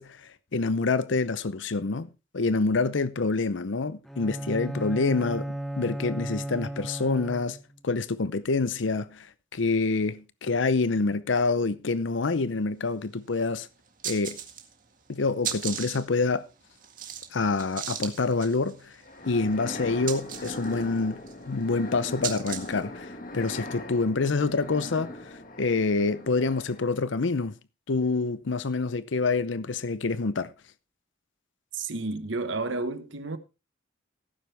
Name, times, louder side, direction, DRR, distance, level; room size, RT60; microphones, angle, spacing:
voice 1, 0.0-2.1 2.3-7.6 7.8-13.7 14.0-14.4 15.1-16.5 17.3-18.9 19.3-27.5 27.9-30.5, left 3 dB, 80° left, 0.7 m, -27 dB
Bowed string instrument, 4.1-7.8, right 1 dB, ahead, 0.9 m, -35 dB
sound 1, 13.0-13.1 13.4-13.5 13.9-14.8 15.1-22.8, right 9 dB, 45° right, 2.0 m, -37 dB
sound 2, 19.0-27.1, left 1 dB, 45° left, 1.8 m, -40 dB
voice 2, 31.7-33.4, right 3 dB, 80° right, 1.3 m, -31 dB
16.5 x 9.4 x 3.4 m
head